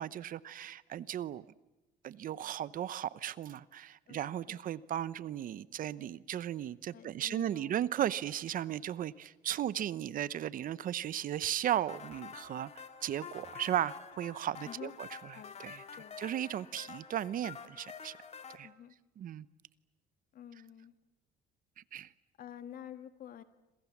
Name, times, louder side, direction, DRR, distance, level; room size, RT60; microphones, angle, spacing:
voice 1, 0.0-1.4 2.0-12.7 13.0-15.8 16.2-18.1 18.5-18.7 19.2-19.5 21.9-22.1, right 11 dB, 55° right, 17 dB, 0.8 m, -36 dB
voice 2, 6.9-7.9 14.7-14.9 15.3-15.5 16.0-16.2 18.6-18.9 20.3-20.9 22.4-23.4, left 10 dB, 60° left, 10 dB, 1.7 m, -49 dB
sound 1, 11.7-18.6, left 6 dB, 40° left, 2.2 m, -48 dB
27.5 x 26.5 x 7.3 m, 1.1 s
cardioid pair, 110°, 17 cm